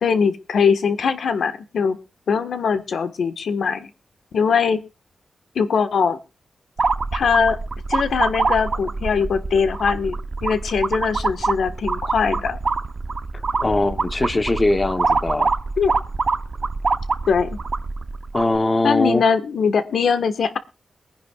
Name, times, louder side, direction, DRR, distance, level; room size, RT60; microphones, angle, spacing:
voice 1, 0.0-2.0 2.3-3.9 4.3-4.8 5.5-6.2 7.1-7.6 7.9-12.6 15.8-15.9 17.3-17.6 18.8-20.6, left 6 dB, 75° left, 9 dB, 1.3 m, -21 dB
sound 1, 6.8-18.6, right 4 dB, 40° right, 0.8 m, -25 dB
voice 2, 13.6-15.5 18.3-19.2, left 2 dB, 25° left, 10 dB, 0.9 m, -21 dB
22.5 x 10.5 x 2.4 m, 0.29 s
wide cardioid pair, 140°, 0 cm